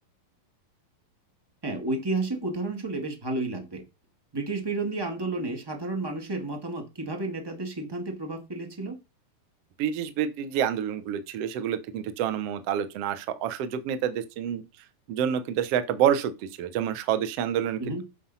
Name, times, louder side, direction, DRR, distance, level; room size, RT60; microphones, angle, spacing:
voice 1, 1.6-3.8 4.3-9.0 17.8-18.0, right 2 dB, 25° right, 0.5 m, -31 dB
voice 2, 9.8-14.6 15.1-18.0, right 9 dB, 70° right, 1.5 m, -28 dB
9.9 x 6.3 x 4.1 m
omnidirectional pair, 4.1 m